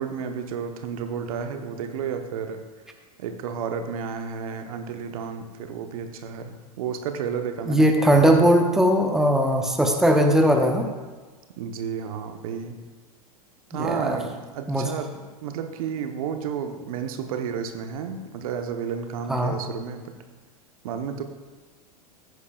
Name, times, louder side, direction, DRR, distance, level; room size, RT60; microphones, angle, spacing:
voice 1, 0.0-2.9 3.2-8.4 11.6-12.9 13.7-15.1 15.4-20.2 20.8-21.2, right 7 dB, 60° right, 6 dB, 1.0 m, -32 dB
voice 2, 7.7-10.9 13.7-14.2 14.7-14.9 19.3-19.5, equal, ahead, 4 dB, 1.0 m, -19 dB
14.0 x 9.7 x 2.4 m, 1.3 s
figure-of-eight pair, 90°, 20 cm